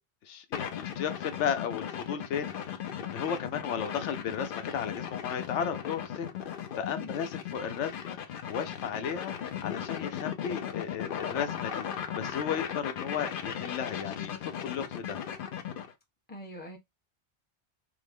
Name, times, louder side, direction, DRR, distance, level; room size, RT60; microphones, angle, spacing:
voice 1, 0.2-8.2 8.5-11.9 12.1-15.2, left 8 dB, 85° left, 1.0 m, -35 dB
sound 1, 0.5-15.9, left 9 dB, 60° left, 0.7 m, -37 dB
voice 2, 16.3-16.8, left 1 dB, 10° left, 0.8 m, -43 dB
3.6 x 2.0 x 3.4 m
omnidirectional pair, 1.2 m